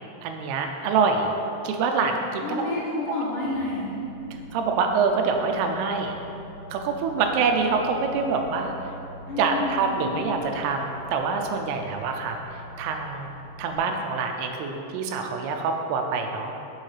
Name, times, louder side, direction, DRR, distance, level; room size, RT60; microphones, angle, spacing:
voice 1, 0.2-1.3 1.6-2.6 4.5-6.1 6.7-8.9 9.4-13.3 13.6-16.5, right 5 dB, 80° right, 4 dB, 2.5 m, -25 dB
voice 2, 2.4-3.9 9.3-10.3, left 2 dB, 80° left, -7 dB, 1.9 m, -30 dB
Microwave oven, 3.4-13.8, equal, 65° right, 2.9 m, -44 dB
8.4 x 6.4 x 3.2 m, 2.8 s
omnidirectional pair, 4.8 m